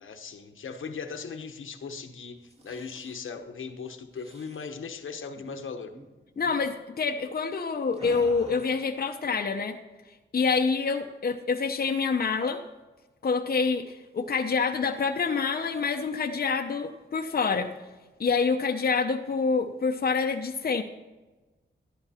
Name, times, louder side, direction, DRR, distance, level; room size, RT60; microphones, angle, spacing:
voice 1, 0.0-5.9, left 5 dB, 75° left, 6 dB, 1.1 m, -38 dB
sound 1, 2.3-3.2 4.1-4.7 5.3-5.6 5.8-6.1 6.4-6.6 7.9-8.9, right 1 dB, 30° right, 1.9 m, -47 dB
voice 2, 6.4-9.8 10.3-12.6 13.2-17.7 18.2-20.8, left 5 dB, 50° left, 4 dB, 0.8 m, -27 dB
13.0 x 11.5 x 4.3 m, 1.2 s
wide cardioid pair, 85°, 21 cm